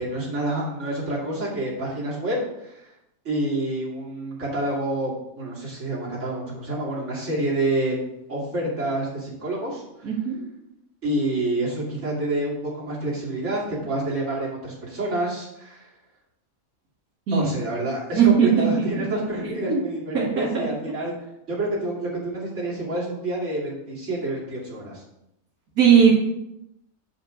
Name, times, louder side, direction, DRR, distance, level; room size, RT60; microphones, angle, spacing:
voice 1, 0.0-2.9 3.2-8.0 8.3-10.1 11.0-15.9 17.3-21.1 21.5-25.0, right 1 dB, 55° right, -6 dB, 3.1 m, -28 dB
voice 2, 10.0-10.4 17.3-17.5 18.1-19.8 20.1-20.7 25.8-26.1, right 7 dB, 90° right, -5 dB, 2.1 m, -19 dB
8.5 x 5.1 x 5.0 m, 0.83 s
omnidirectional pair, 1.5 m